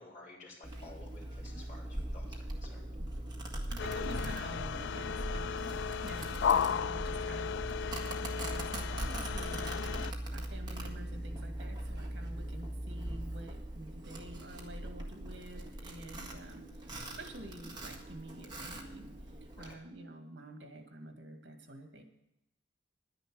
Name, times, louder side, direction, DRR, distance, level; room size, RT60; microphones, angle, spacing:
voice 1, 0.0-2.8 3.5-3.6 19.6-19.8, left 2 dB, 45° left, -6 dB, 4.7 m, -53 dB
Domestic sounds home sounds, 0.6-19.7, right 1 dB, 25° right, 1.7 m, -40 dB
voice 2, 3.7-7.5 8.2-9.8 10.3-16.9 17.2-19.1 19.4-22.0, right 1 dB, 70° right, 4 dB, 2.1 m, -48 dB
sound 1, 3.8-10.1, left 7 dB, 75° left, 0.3 m, -35 dB
11.0 x 10.5 x 6.2 m, 0.82 s
head